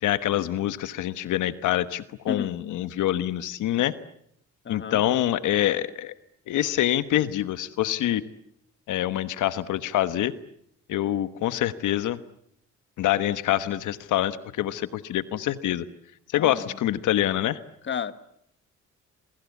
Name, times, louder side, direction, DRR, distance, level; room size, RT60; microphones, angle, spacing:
voice 1, 0.0-3.9 4.7-6.1 6.5-8.2 8.9-10.3 10.9-12.2 13.0-15.8 16.3-17.6, left 13 dB, 80° left, 13 dB, 1.2 m, -25 dB
voice 2, 4.6-5.0 16.4-16.8 17.8-18.1, left 7 dB, 40° left, 13 dB, 1.4 m, -32 dB
28.0 x 23.5 x 8.4 m, 0.71 s
cardioid pair, 90°, 30 cm